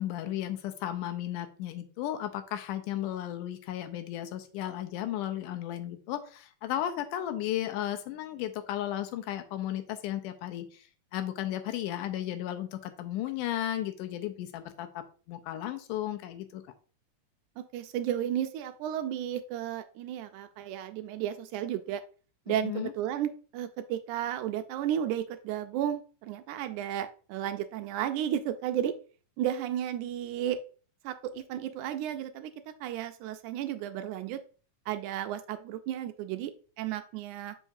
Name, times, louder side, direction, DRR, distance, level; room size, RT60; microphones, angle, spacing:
voice 1, 0.0-10.9 11.1-16.6 22.5-22.9, left 12 dB, 90° left, 7 dB, 2.3 m, -34 dB
voice 2, 17.6-22.0 22.5-28.9 29.4-30.6 31.0-32.5 32.8-34.4 34.9-37.6, right 11 dB, 80° right, 10 dB, 1.9 m, -33 dB
7.2 x 5.5 x 2.6 m, 0.39 s
omnidirectional pair, 3.6 m